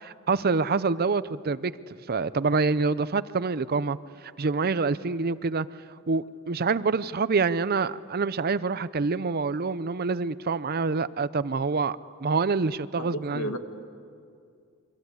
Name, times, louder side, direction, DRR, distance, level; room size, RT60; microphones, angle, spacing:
voice 1, 0.0-1.7 2.1-4.0 4.4-5.7 6.1-13.5, right 4 dB, 45° right, 0.6 m, -26 dB
voice 2, 13.0-13.6, equal, 85° left, 2.0 m, -32 dB
28.5 x 24.0 x 8.3 m
head